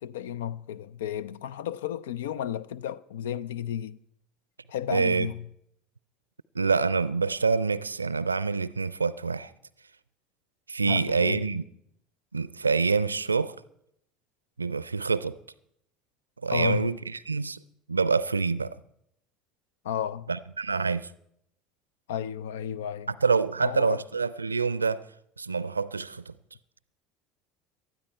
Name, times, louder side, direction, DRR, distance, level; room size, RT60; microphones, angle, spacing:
voice 1, 0.0-4.0 4.7-5.5 10.8-11.6 16.5-16.9 19.8-20.3 22.1-23.1 23.6-24.0, left 10 dB, 70° left, 0.5 m, -33 dB
voice 2, 4.9-5.3 6.5-9.5 10.7-11.6 12.3-13.5 14.6-15.4 16.4-17.6 17.9-18.8 20.3-21.1 23.2-25.0 25.4-26.3, right 4 dB, 85° right, 0.4 m, -26 dB
18.5 x 12.5 x 4.5 m
figure-of-eight pair, 65°, 0 cm